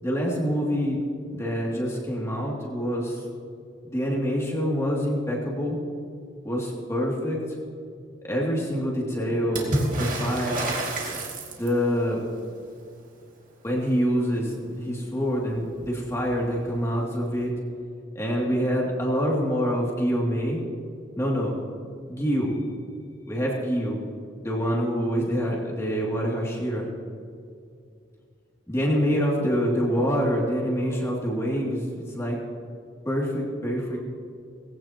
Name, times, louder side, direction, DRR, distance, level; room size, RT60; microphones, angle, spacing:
voice 1, 0.0-1.0 1.3-3.2 3.8-5.8 6.4-7.4 8.2-10.6 11.6-12.2 13.6-17.5 18.1-20.6 21.2-21.6 22.1-22.6 23.3-24.0 24.4-26.9 28.7-32.4 33.0-34.0, equal, 15° left, -3 dB, 2.6 m, -26 dB
Water / Splash splatter, 9.5-11.9 15.2-15.3 15.6-16.3 17.4-17.5, right 1 dB, 45° right, 2.4 m, -29 dB
19.0 x 16.5 x 3.0 m, 2.4 s
head